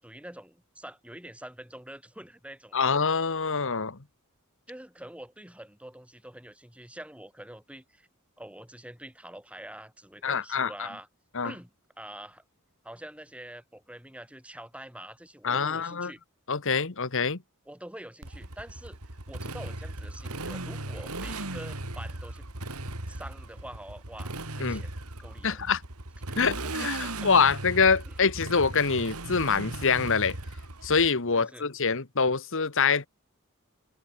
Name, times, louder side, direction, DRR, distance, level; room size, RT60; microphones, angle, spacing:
voice 1, 0.0-2.9 4.7-8.1 8.4-11.1 11.4-11.7 12.0-12.4 12.8-16.2 17.7-22.5 23.1-25.0 25.2-25.6 26.4-27.3 28.1-28.2 31.3-31.6, right 1 dB, 5° right, 7.6 m, -45 dB
voice 2, 2.7-4.0 10.2-10.9 11.3-11.5 15.4-16.1 16.5-17.4 24.6-24.8 25.4-25.8 26.4-30.4 30.8-33.1, left 5 dB, 60° left, 1.5 m, -25 dB
Motorcycle, 18.2-31.1, right 2 dB, 90° right, 3.7 m, -37 dB
open air
head